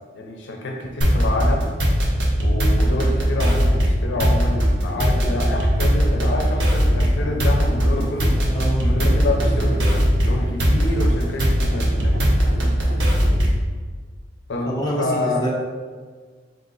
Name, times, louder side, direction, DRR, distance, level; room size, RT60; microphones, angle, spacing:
voice 1, 0.1-1.7 2.4-8.5 8.8-12.1 14.5-15.4, left 2 dB, 70° left, 1 dB, 0.5 m, -28 dB
sound 1, 1.0-13.7, equal, 65° right, 0.7 m, -19 dB
sound 2, 2.9-13.4, equal, ahead, 1.1 m, -37 dB
sound 3, 6.9-13.4, right 1 dB, 25° right, 1.1 m, -37 dB
voice 2, 8.5-8.9 13.0-13.1 14.6-15.5, right 1 dB, 20° left, -4 dB, 0.7 m, -26 dB
4.0 x 2.5 x 3.8 m, 1.5 s
head